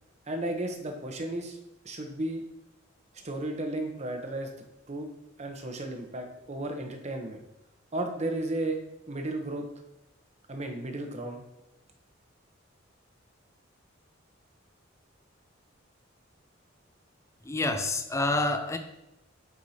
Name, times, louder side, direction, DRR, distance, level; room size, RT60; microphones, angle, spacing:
voice 1, 0.3-1.6 1.8-2.4 3.1-4.5 4.9-5.1 5.4-7.4 7.9-8.8 9.1-9.7 10.5-11.4, right 1 dB, 35° right, 4 dB, 0.8 m, -34 dB
voice 2, 17.5-18.8, left 2 dB, 15° left, 7 dB, 0.5 m, -28 dB
8.6 x 4.7 x 2.8 m, 0.88 s
head